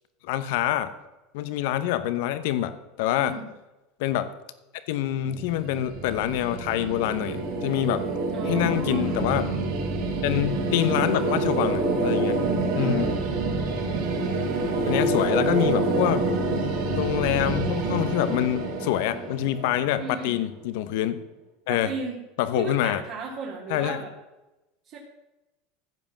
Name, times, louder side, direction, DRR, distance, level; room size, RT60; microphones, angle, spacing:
voice 1, 0.2-0.9 1.3-2.7 3.0-3.3 4.0-4.3 4.9-8.0 8.5-9.5 10.2-12.4 12.7-13.1 14.8-16.2 16.9-21.2 21.7-21.9 22.4-23.0 23.7-24.0, left 12 dB, 75° left, 12 dB, 0.9 m, -26 dB
sound 1, 5.2-20.2, right 2 dB, 70° right, 4.2 m, -27 dB
voice 2, 8.3-9.2 12.7-13.2 14.9-15.4 20.0-20.4 21.7-22.2 22.6-24.1 24.9-25.0, right 4 dB, 50° right, -3 dB, 2.4 m, -35 dB
15.0 x 5.3 x 7.2 m, 1.0 s
supercardioid pair, 120°, 0 cm